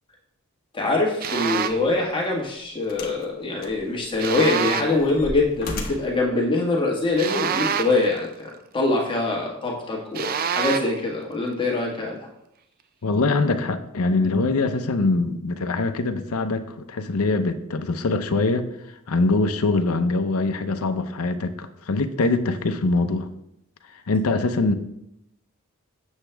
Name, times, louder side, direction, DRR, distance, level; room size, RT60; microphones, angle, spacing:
voice 1, 0.7-12.3, left 2 dB, 25° left, -2 dB, 1.4 m, -24 dB
sound 1, 1.2-1.9 4.2-5.1 7.2-8.2 10.2-11.0, right 7 dB, 40° right, 0.4 m, -27 dB
sound 2, 1.7-1.9 2.9-3.3 3.6-4.3 4.7-6.2 7.1-7.2, left 2 dB, 45° left, 1.2 m, -35 dB
voice 2, 13.0-18.6 19.1-23.3 23.9-24.7, left 3 dB, 75° left, 8 dB, 0.6 m, -23 dB
8.1 x 7.2 x 3.4 m, 0.78 s
head